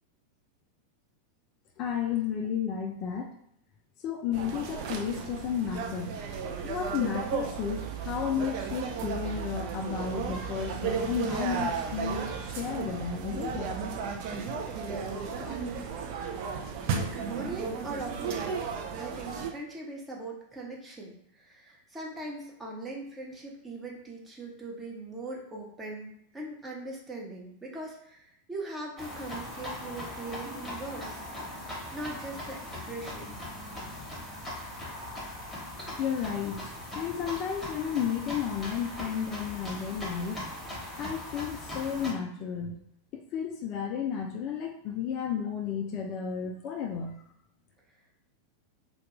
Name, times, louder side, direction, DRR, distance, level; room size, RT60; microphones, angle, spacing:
voice 1, 1.8-3.4 4.0-6.2 6.6-13.7 36.0-40.4 41.0-42.8 43.1-47.2, left 7 dB, 40° left, 2 dB, 0.3 m, -32 dB
sound 1, 4.3-19.5, right 6 dB, 45° right, 0.4 m, -34 dB
voice 2, 14.7-16.1 16.9-18.5 19.0-31.2 31.6-33.4, right 2 dB, 15° right, -3 dB, 0.7 m, -41 dB
sound 2, 29.0-42.1, left 1 dB, 5° left, 1.0 m, -40 dB
2.2 x 2.2 x 2.9 m, 0.74 s
figure-of-eight pair, 90°, 0 cm